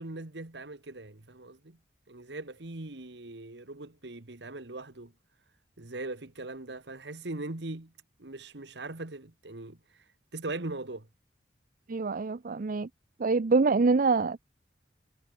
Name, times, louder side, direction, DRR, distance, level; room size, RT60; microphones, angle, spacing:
voice 1, 0.0-1.8 2.1-5.1 5.8-7.9 8.2-10.0 10.3-11.1, right 2 dB, 70° right, 1.7 m, -40 dB
voice 2, 11.9-12.9 13.2-14.5, right 4 dB, 50° right, 0.5 m, -25 dB
head